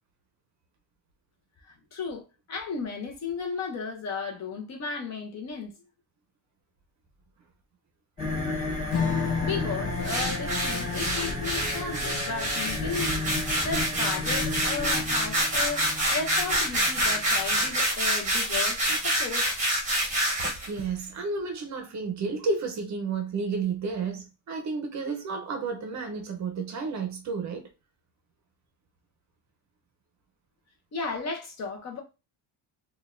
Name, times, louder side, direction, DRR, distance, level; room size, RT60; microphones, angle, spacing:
voice 1, 1.7-5.8 9.4-13.2 13.6-19.5 30.9-32.0, left 4 dB, 40° left, 0.7 m, -34 dB
sound 1, 8.2-17.8, left 2 dB, 20° left, 1.6 m, -33 dB
Strum, 8.9-15.8, left 5 dB, 70° left, 0.8 m, -35 dB
sound 2, 10.0-20.7, right 1 dB, 15° right, 0.9 m, -27 dB
voice 2, 20.7-27.7, right 4 dB, 40° right, 0.6 m, -31 dB
3.8 x 2.3 x 2.5 m
cardioid pair, 165°, 43 cm